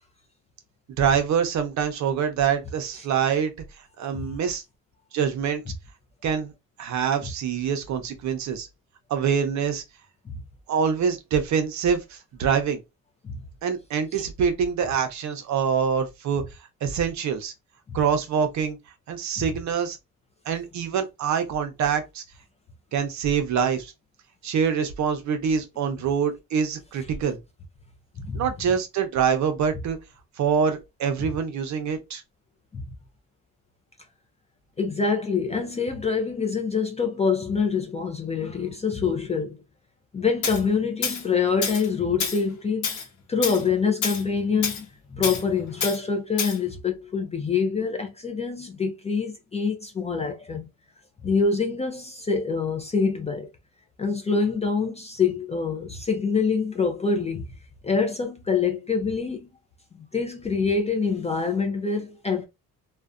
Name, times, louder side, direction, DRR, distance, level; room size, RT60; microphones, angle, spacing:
voice 1, 1.0-3.5 4.0-4.6 5.1-5.6 6.2-6.5 6.8-8.7 9.1-9.8 10.7-12.8 13.6-16.4 16.8-17.5 17.9-18.8 19.1-20.0 20.5-22.2 22.9-23.9 24.4-27.4 28.3-30.0 30.4-32.2, right 7 dB, 55° right, 0.6 m, -25 dB
voice 2, 34.8-39.6 40.1-42.9 43.3-44.9 45.1-50.7 51.2-53.5 54.0-57.5 57.8-59.5 60.1-62.4, left 5 dB, 20° left, 0.3 m, -25 dB
Tools, 40.4-40.6 41.0-41.2 41.6-41.9 42.2-42.4 42.8-43.1 43.4-43.6 44.0-44.2 44.6-44.8 45.2-45.4 45.8-46.0 46.4-46.6, left 5 dB, 60° left, 0.8 m, -28 dB
2.5 x 2.1 x 2.3 m
cardioid pair, 135°, 35 cm